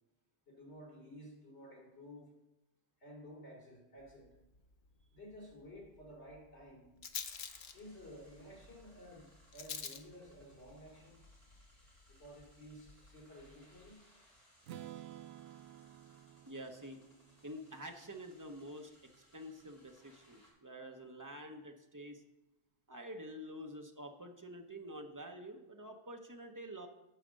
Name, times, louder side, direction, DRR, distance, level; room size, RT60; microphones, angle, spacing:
voice 1, 0.5-2.3 3.0-4.4 5.1-6.9 7.7-11.2 12.1-14.0, equal, 80° left, -2 dB, 3.2 m, -53 dB
Rattle, 4.0-13.9, left 6 dB, 50° left, 0.8 m, -51 dB
sound 1, 7.3-20.5, equal, 25° left, 3.0 m, -68 dB
Strum, 14.6-18.6, right 12 dB, 70° right, 0.8 m, -53 dB
voice 2, 16.4-17.0 17.4-18.9 19.3-22.2 22.9-26.9, equal, 20° right, 4 dB, 0.9 m, -48 dB
11.5 x 5.0 x 6.4 m, 0.94 s
omnidirectional pair, 1.1 m